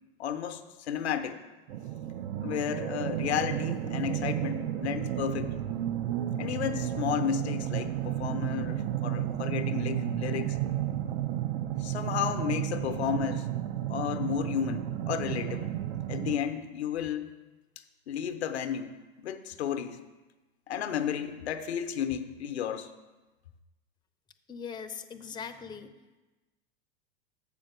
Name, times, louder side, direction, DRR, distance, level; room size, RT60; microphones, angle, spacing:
voice 1, 0.2-0.6 0.9-1.4 2.4-5.5 6.4-10.6 11.8-15.7 16.1-17.3 18.1-18.9 19.2-20.0 20.7-22.9, left 8 dB, 85° left, 8 dB, 0.7 m, -32 dB
sound 1, 1.7-16.4, right 12 dB, 55° right, 0.6 m, -32 dB
voice 2, 24.5-25.9, left 6 dB, 15° left, 8 dB, 0.5 m, -40 dB
7.4 x 5.1 x 6.6 m, 1.2 s
hypercardioid pair, 90°, 32 cm